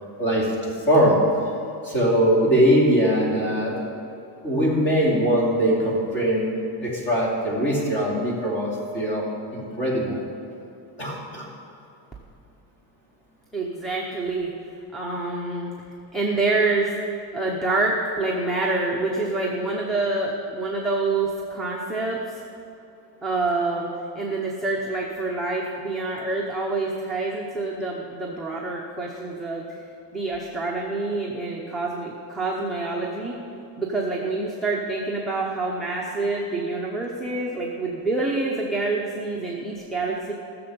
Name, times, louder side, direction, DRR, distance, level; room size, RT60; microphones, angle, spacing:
voice 1, 0.2-0.5 0.9-1.2 1.8-3.8 4.4-6.5 6.8-9.3 9.5-10.2 11.0-11.5, equal, 25° left, -3 dB, 2.7 m, -21 dB
voice 2, 13.5-14.5 14.9-15.7 16.1-16.9 17.3-22.4 23.2-29.8 30.1-33.4 33.8-40.3, right 3 dB, ahead, -5 dB, 0.7 m, -27 dB
14.5 x 7.0 x 6.8 m, 2.7 s
cardioid pair, 175°, 42 cm